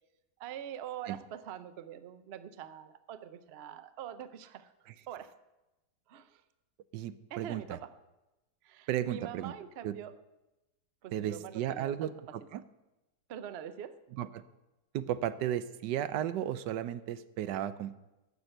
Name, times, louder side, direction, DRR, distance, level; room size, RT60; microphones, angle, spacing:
voice 1, 0.4-4.7 5.1-5.3 6.1-6.4 7.3-7.9 8.6-10.1 11.0-12.1 13.3-13.9, right 9 dB, 90° right, 12 dB, 0.5 m, -44 dB
voice 2, 6.9-7.8 8.9-9.5 9.8-9.9 11.1-12.6 14.2-14.4 14.9-17.9, right 11 dB, 75° right, 14 dB, 1.2 m, -34 dB
11.5 x 7.1 x 7.8 m, 0.99 s
omnidirectional pair, 2.0 m